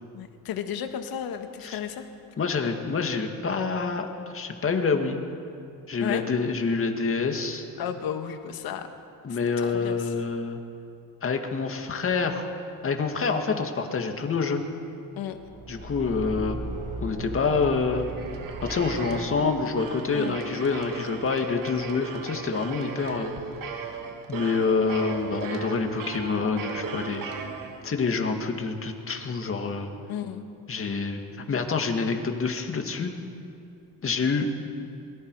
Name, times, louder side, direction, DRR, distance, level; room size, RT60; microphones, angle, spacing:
voice 1, 0.1-2.1 6.0-6.2 7.8-8.9 9.6-10.1 15.2-15.4 20.1-20.4 30.1-30.5, left 9 dB, 90° left, 7 dB, 1.6 m, -33 dB
voice 2, 2.4-5.2 5.9-7.7 9.2-10.6 11.2-12.5 12.8-14.6 15.7-16.6 17.0-18.0 18.6-23.3 24.3-27.5 27.8-29.9 30.7-31.2 31.5-33.1 34.0-34.5, left 4 dB, 40° left, 4 dB, 2.1 m, -27 dB
Car / Engine, 15.3-19.9, right 2 dB, 20° right, 5.3 m, -37 dB
sound 1, 17.7-28.2, right 5 dB, 65° right, 1.8 m, -37 dB
27.5 x 23.0 x 4.8 m, 2.6 s
cardioid pair, 120°, 35 cm